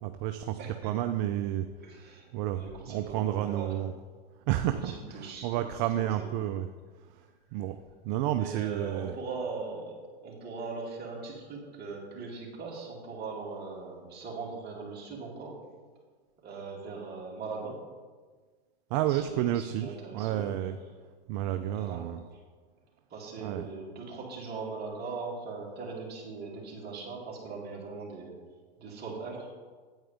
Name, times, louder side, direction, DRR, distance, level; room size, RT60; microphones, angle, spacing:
voice 1, 0.0-1.7 2.3-3.9 4.5-6.7 7.5-7.8 8.0-9.1 18.9-20.8 21.3-22.2 23.4-23.7, right 12 dB, 50° right, 9 dB, 0.5 m, -31 dB
voice 2, 0.6-1.0 1.7-3.8 4.7-5.6 6.0-6.3 8.4-15.6 16.4-17.8 19.1-20.5 21.7-22.0 22.3-22.4 23.1-28.3 28.8-29.5, right 4 dB, 30° right, -3 dB, 2.9 m, -40 dB
9.0 x 8.9 x 3.5 m, 1.5 s
hypercardioid pair, 110°, 31 cm